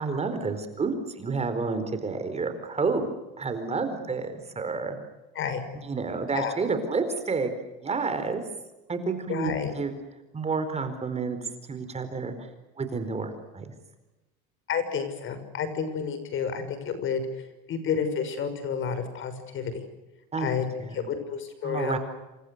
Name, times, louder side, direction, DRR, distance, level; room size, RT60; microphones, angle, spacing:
voice 1, 0.0-5.0 5.8-7.5 7.8-8.4 8.9-9.9 10.3-11.4 11.7-12.5 12.8-13.7 20.3-20.5 20.8-21.1 21.6-22.0, right 4 dB, 20° right, 9 dB, 4.4 m, -30 dB
voice 2, 9.3-9.7 14.7-19.8 20.4-20.7 20.9-22.0, left 6 dB, 45° left, 10 dB, 6.0 m, -30 dB
28.5 x 27.0 x 6.7 m, 1.0 s
supercardioid pair, 125°, 29 cm